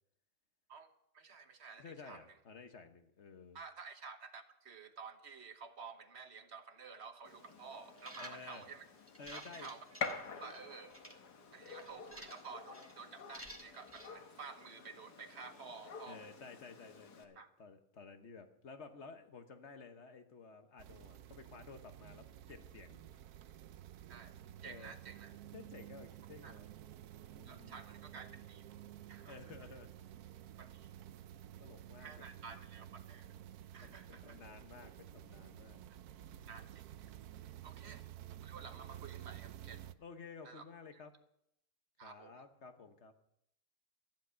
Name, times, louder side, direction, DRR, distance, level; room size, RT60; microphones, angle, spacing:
voice 1, 0.7-2.2 3.5-8.8 9.3-9.8 10.4-11.0 11.5-16.3 17.4-17.5 24.1-24.4 24.6-25.3 26.4-26.6 27.4-28.6 29.1-29.4 30.6-30.9 32.0-33.4 33.7-34.4 35.9-36.0 36.5-36.9 37.6-38.0 38.4-39.9 40.4-40.6 42.0-42.4, right 5 dB, 45° right, 8 dB, 1.2 m, -52 dB
voice 2, 1.8-3.6 8.2-8.6 9.2-9.7 16.1-23.2 24.6-24.9 25.5-26.7 27.3-27.8 29.3-29.9 31.6-32.3 33.8-35.8 37.8-37.9 40.0-41.2 42.0-43.1, left 5 dB, 50° left, 8 dB, 1.3 m, -53 dB
Gunshot gunfire, 7.2-17.2, left 5 dB, 80° left, 1.9 m, -48 dB
sound 1, 8.0-8.6 9.1-10.6 10.9-11.1 11.7-12.5 12.7-12.9 13.3-14.1, right 1 dB, 10° right, 1.5 m, -52 dB
sound 2, 20.8-39.9, right 12 dB, 75° right, 1.1 m, -52 dB
14.0 x 11.0 x 5.7 m, 0.79 s
omnidirectional pair, 1.7 m